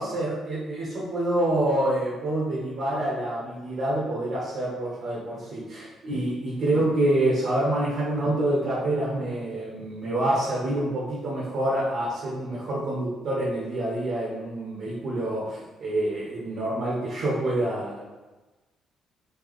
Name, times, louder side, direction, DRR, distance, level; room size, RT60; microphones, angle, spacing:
voice 1, 0.0-18.0, right 1 dB, 70° right, -6 dB, 1.2 m, -27 dB
4.5 x 2.8 x 3.2 m, 1.2 s
cardioid pair, 90°, 0 cm